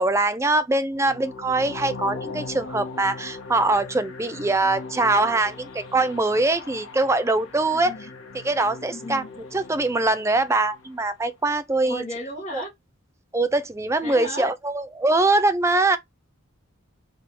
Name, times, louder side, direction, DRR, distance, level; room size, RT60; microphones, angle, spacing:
voice 1, 0.0-7.9 8.4-9.2 9.5-12.0 12.5-12.6 13.3-16.0, right 2 dB, 15° right, 0.4 m, -23 dB
sound 1, 0.9-11.0, left 3 dB, 90° left, 0.8 m, -39 dB
voice 2, 7.7-8.1 8.9-9.3 11.8-12.7 14.0-14.5, equal, 35° left, 1.6 m, -34 dB
3.7 x 3.6 x 2.9 m
head